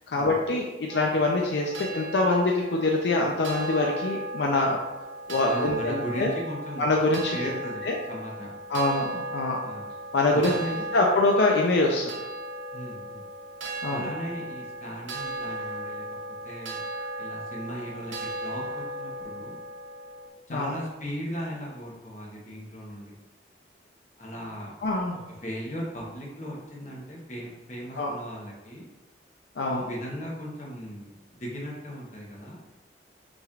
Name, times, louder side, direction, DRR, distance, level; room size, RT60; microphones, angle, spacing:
voice 1, 0.1-4.8 5.3-6.3 6.8-7.4 7.8-8.0 8.7-9.6 10.1-10.5 10.9-12.0 13.8-14.0 20.5-20.7 24.8-25.2 28.0-28.1 29.6-29.8, left 2 dB, 75° left, -1 dB, 0.5 m, -24 dB
sound 1, 0.9-20.3, right 1 dB, 90° right, 0.8 m, -36 dB
voice 2, 5.5-6.9 7.3-8.5 9.6-9.9 10.3-10.9 12.7-13.2 13.9-16.0 16.4-16.8 17.2-19.6 20.5-23.2 24.2-24.7 25.4-28.9 29.7-32.6, equal, 40° left, -4 dB, 1.1 m, -37 dB
6.1 x 3.1 x 2.5 m, 1.0 s
head